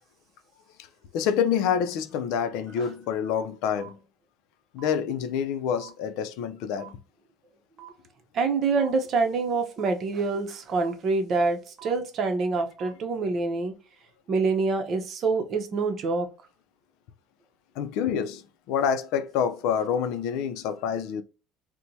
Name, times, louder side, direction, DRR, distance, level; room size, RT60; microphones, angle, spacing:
voice 1, 1.1-4.0 4.7-7.0 17.8-21.2, left 7 dB, 75° left, 0.4 m, -27 dB
sound 1, 3.8-3.9 4.8-4.9 5.8-5.9 6.8-6.9 7.8-7.9 8.8-8.9 9.8-9.9 10.8-10.9 11.8-11.9 12.8-12.9, right 13 dB, 20° right, 1.1 m, -44 dB
voice 2, 8.3-13.7 14.3-16.3, right 4 dB, 45° right, 0.7 m, -26 dB
4.4 x 2.1 x 2.6 m
cardioid pair, 140°, 0 cm